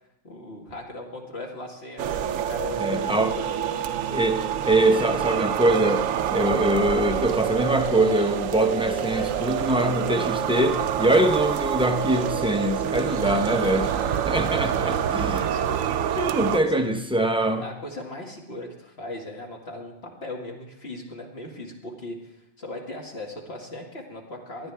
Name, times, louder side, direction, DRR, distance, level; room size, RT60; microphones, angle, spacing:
voice 1, 0.2-3.6 13.1-14.4 14.9-16.2 16.7-16.8 17.6-24.7, left 1 dB, 50° left, 0 dB, 2.3 m, -38 dB
sound 1, 2.0-16.6, right 9 dB, 75° right, 1.0 m, -27 dB
voice 2, 2.8-3.3 4.1-6.0 6.3-13.9 14.3-15.5 16.0-17.6, right 1 dB, 5° right, 5 dB, 0.7 m, -23 dB
18.5 x 11.5 x 3.5 m, 0.82 s
omnidirectional pair, 1.4 m